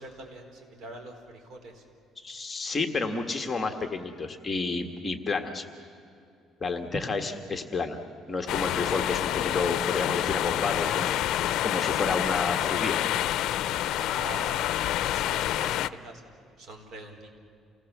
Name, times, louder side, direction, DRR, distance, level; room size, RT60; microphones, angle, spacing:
voice 1, 0.0-1.8 14.0-16.2 16.6-17.3, right 2 dB, 55° right, 3 dB, 4.4 m, -44 dB
voice 2, 2.2-5.6 6.6-8.0 8.3-13.0, left 4 dB, 20° left, 5 dB, 1.6 m, -30 dB
sound 1, 8.5-15.9, left 12 dB, 70° left, 0.6 m, -28 dB
28.5 x 19.5 x 7.3 m, 2.5 s
cardioid pair, 130°, 0 cm